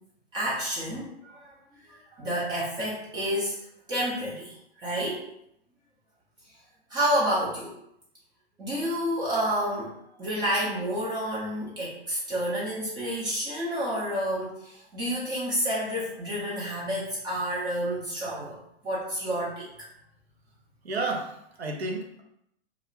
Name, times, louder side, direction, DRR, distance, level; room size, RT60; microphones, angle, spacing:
voice 1, 0.3-1.6 1.9-3.6 3.9-5.3 6.9-7.8 8.6-18.6 18.8-19.7, equal, 15° right, -6 dB, 0.4 m, -29 dB
voice 2, 20.8-22.2, right 2 dB, 75° right, 2 dB, 0.7 m, -31 dB
2.4 x 2.1 x 3.0 m, 0.76 s
figure-of-eight pair, 105°, 32 cm